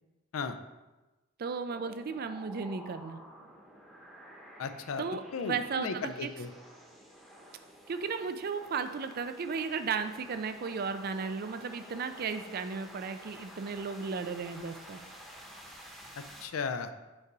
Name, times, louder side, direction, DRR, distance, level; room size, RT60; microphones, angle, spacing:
voice 1, 1.4-3.2 5.0-6.3 7.9-15.0, right 5 dB, 45° right, 9 dB, 0.4 m, -35 dB
sound 1, 1.7-16.5, equal, ahead, 0.8 m, -51 dB
voice 2, 4.6-5.0 5.3-6.5 16.2-16.9, left 5 dB, 85° left, 9 dB, 0.5 m, -35 dB
5.5 x 3.9 x 4.7 m, 1.1 s
head